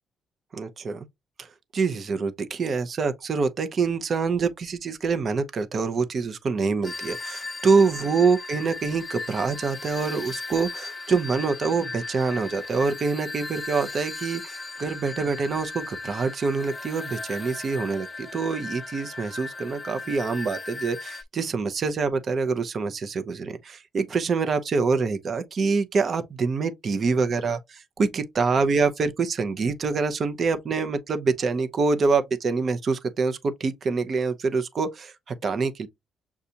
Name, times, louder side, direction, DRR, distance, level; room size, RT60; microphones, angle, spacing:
voice 1, 0.5-1.1 1.4-1.5 1.7-35.9, right 4 dB, 50° right, 0.7 m, -25 dB
sound 1, 6.8-21.2, left 3 dB, 30° left, 0.6 m, -37 dB
6.8 x 2.4 x 2.7 m
cardioid pair, 90°, 0 cm